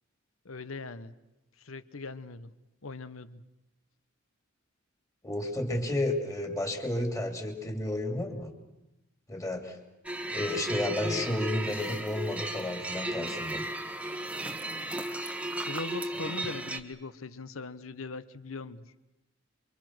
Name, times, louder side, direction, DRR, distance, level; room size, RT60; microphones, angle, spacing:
voice 1, 0.4-1.1 1.6-2.5 2.8-3.4 15.6-18.9, left 3 dB, 75° left, 14 dB, 1.1 m, -40 dB
voice 2, 5.2-8.5 9.3-9.8 10.3-13.6, left 1 dB, 15° left, 4 dB, 2.9 m, -32 dB
sound 1, 10.0-16.8, right 1 dB, 5° right, 1.2 m, -35 dB
28.5 x 24.5 x 6.2 m, 0.95 s
head